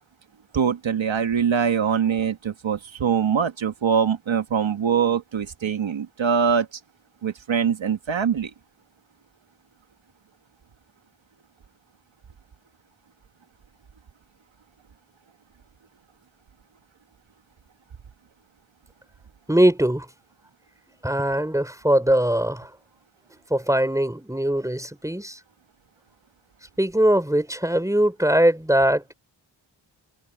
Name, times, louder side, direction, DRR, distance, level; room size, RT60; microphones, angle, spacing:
voice 1, 0.5-6.8 7.2-8.5, right 7 dB, 70° right, 1.7 m, -23 dB
voice 2, 19.5-20.1 21.0-22.7 23.5-25.4 26.8-29.1, right 1 dB, 5° right, 4.4 m, -21 dB
cardioid pair, 40°, 47 cm